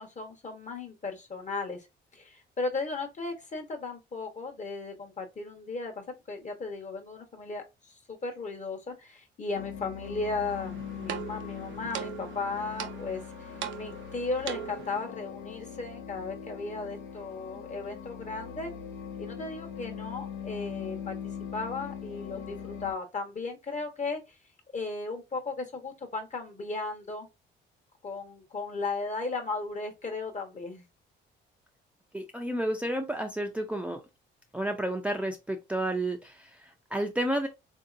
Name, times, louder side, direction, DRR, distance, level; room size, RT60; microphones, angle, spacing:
voice 1, 0.0-1.9 2.1-13.2 13.7-18.7 19.2-21.1 21.5-24.2 24.7-27.3 28.0-30.8, left 3 dB, 35° left, 1.1 m, -36 dB
sound 1, 9.5-22.9, left 7 dB, 85° left, 0.7 m, -41 dB
sound 2, 10.4-15.0, right 10 dB, 75° right, 0.6 m, -40 dB
voice 2, 32.1-34.0 34.5-37.5, right 1 dB, 5° right, 0.5 m, -31 dB
3.6 x 2.8 x 2.5 m
cardioid pair, 90°, 20 cm